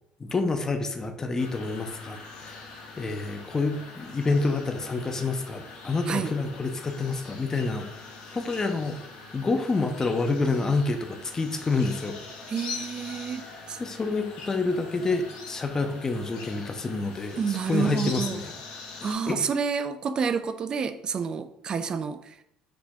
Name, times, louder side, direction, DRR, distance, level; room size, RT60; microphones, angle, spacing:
voice 1, 0.2-9.0 9.3-12.2 13.4-18.5 19.3-19.5, left 3 dB, 25° left, 6 dB, 0.6 m, -28 dB
sound 1, 1.4-19.1, left 4 dB, 80° left, 1.1 m, -43 dB
voice 2, 12.5-13.8 17.4-18.4 19.0-22.4, right 6 dB, 40° right, 11 dB, 0.4 m, -29 dB
5.1 x 2.6 x 3.4 m, 0.78 s
supercardioid pair, 95°, 2 cm